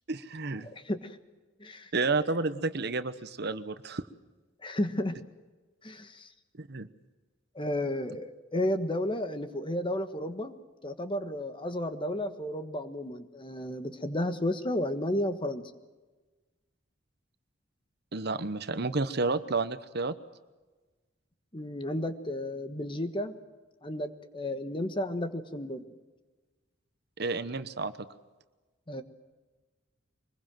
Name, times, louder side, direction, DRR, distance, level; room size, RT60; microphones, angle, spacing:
voice 1, 0.1-0.7 1.9-4.0 6.6-6.9 18.1-20.1 27.2-28.1, right 3 dB, 55° right, 12 dB, 1.0 m, -31 dB
voice 2, 0.6-1.2 1.6-1.9 4.6-5.2 5.8-6.3 7.5-15.6 21.5-23.4 23.8-25.8 28.9-29.0, left 1 dB, 25° left, 9 dB, 1.4 m, -33 dB
24.0 x 21.0 x 7.6 m, 1.3 s
head